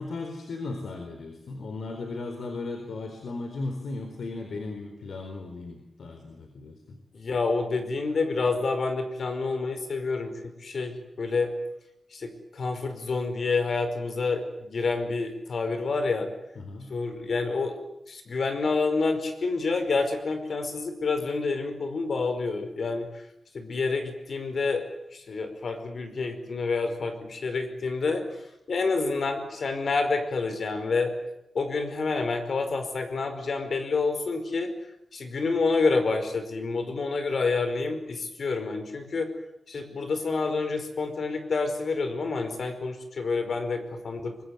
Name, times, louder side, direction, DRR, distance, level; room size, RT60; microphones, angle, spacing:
voice 1, 0.0-7.0 16.6-16.9, left 3 dB, 85° left, 5 dB, 4.2 m, -36 dB
voice 2, 7.1-11.5 12.1-16.3 16.9-17.8 18.1-23.2 23.5-24.9 25.1-28.2 28.7-31.1 31.5-34.7 35.1-39.3 39.7-44.4, left 4 dB, 60° left, 8 dB, 5.1 m, -28 dB
24.5 x 23.0 x 9.8 m, 0.83 s
wide cardioid pair, 140°, 0 cm